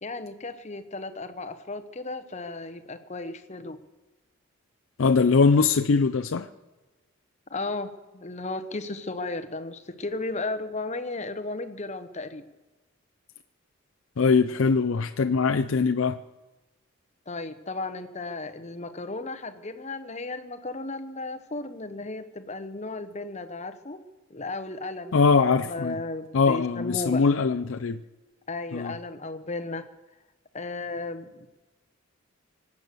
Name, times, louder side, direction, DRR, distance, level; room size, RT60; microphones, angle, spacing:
voice 1, 0.0-3.8 7.5-12.4 17.3-24.0 24.3-25.1 25.6-27.2 28.5-29.8 30.5-31.5, left 2 dB, 35° left, 10 dB, 1.0 m, -34 dB
voice 2, 5.0-6.5 14.2-16.2 25.1-26.0 26.3-28.0 28.7-28.9, left 4 dB, 70° left, 6 dB, 0.5 m, -22 dB
25.0 x 8.5 x 6.8 m, 1.1 s
head